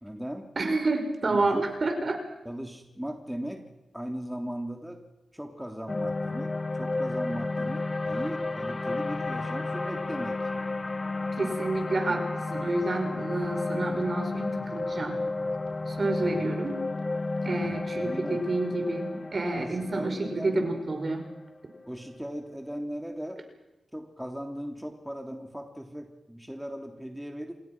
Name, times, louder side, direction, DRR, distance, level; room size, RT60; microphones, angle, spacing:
voice 1, 0.0-0.5 1.3-1.7 2.4-3.7 3.9-5.0 5.3-10.5 16.1-16.5 17.6-18.4 19.6-20.6 21.9-23.4 23.9-27.5, equal, 5° right, 3 dB, 3.2 m, -38 dB
voice 2, 0.6-2.2 11.4-15.2 15.9-16.8 17.4-21.3, right 2 dB, 50° right, 5 dB, 5.4 m, -29 dB
sound 1, 5.9-22.1, left 2 dB, 40° left, 2.3 m, -32 dB
28.0 x 20.5 x 6.2 m, 0.96 s
cardioid pair, 50°, 0 cm